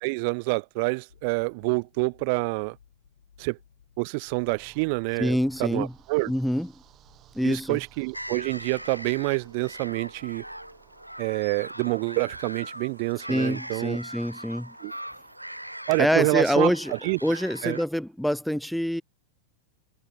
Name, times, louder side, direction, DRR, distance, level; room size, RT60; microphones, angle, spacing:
voice 1, 0.0-2.8 3.4-3.6 4.0-6.3 7.4-10.4 11.2-14.0 14.8-14.9 15.9-16.7 17.0-17.2 17.6-17.8, right 32 dB, 45° right, 0.3 m, -27 dB
sound 1, 1.1-10.9, left 7 dB, 70° left, 5.6 m, -62 dB
sound 2, 4.3-18.1, right 12 dB, 30° right, 6.3 m, -58 dB
voice 2, 5.2-5.9 6.3-6.8 7.3-7.8 13.3-14.7 16.0-16.9 17.2-19.0, equal, ahead, 0.9 m, -26 dB
sound 3, 8.1-17.8, right 1 dB, 90° right, 2.2 m, -41 dB
figure-of-eight pair, 90°, 0 cm